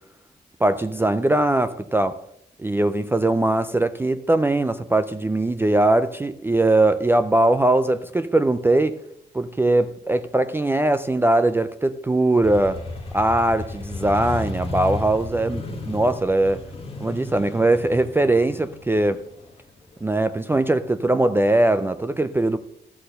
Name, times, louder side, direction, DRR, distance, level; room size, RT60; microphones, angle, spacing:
voice 1, 0.6-2.2 2.6-9.0 9.3-12.8 13.1-16.7 17.0-19.3 20.0-22.6, right 2 dB, 15° right, 0.3 m, -21 dB
Motorcycle, 12.4-20.1, left 3 dB, 35° left, 1.3 m, -34 dB
13.0 x 4.4 x 6.5 m
wide cardioid pair, 170°, 18 cm